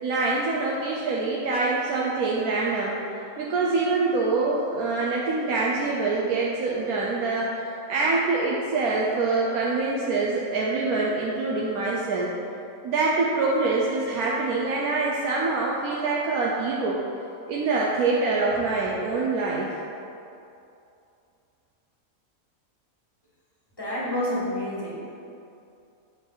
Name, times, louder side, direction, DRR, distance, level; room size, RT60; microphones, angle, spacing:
voice 1, 0.0-3.0 3.4-7.5 7.9-12.3 12.8-17.0 17.5-19.7, right 3 dB, 75° right, -4 dB, 1.2 m, -25 dB
voice 2, 23.8-25.1, left 1 dB, 15° left, -7 dB, 1.5 m, -29 dB
8.7 x 4.8 x 3.9 m, 2.6 s
omnidirectional pair, 1.6 m